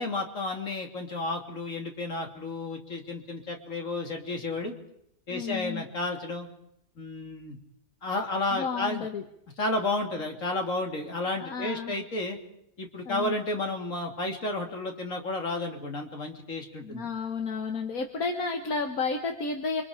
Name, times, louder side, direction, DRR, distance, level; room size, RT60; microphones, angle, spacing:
voice 1, 0.0-4.7 5.3-6.5 7.0-7.6 8.0-9.1 9.6-12.4 12.8-17.0, left 2 dB, 65° left, 2 dB, 3.5 m, -32 dB
voice 2, 5.3-5.9 8.5-9.2 11.4-11.9 13.1-13.4 16.8-19.8, left 4 dB, 85° left, 4 dB, 1.9 m, -32 dB
29.0 x 25.0 x 5.1 m, 0.77 s
omnidirectional pair, 1.5 m